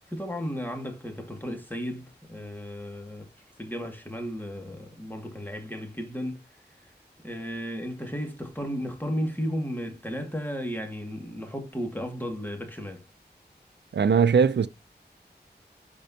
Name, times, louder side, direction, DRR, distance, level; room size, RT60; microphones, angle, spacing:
voice 1, 0.0-3.3 3.6-6.4 7.2-13.0, equal, 10° left, 2.0 m, -34 dB
voice 2, 13.9-14.7, right 6 dB, 80° right, 0.5 m, -20 dB
12.0 x 4.4 x 2.8 m
wide cardioid pair, 55°, 18 cm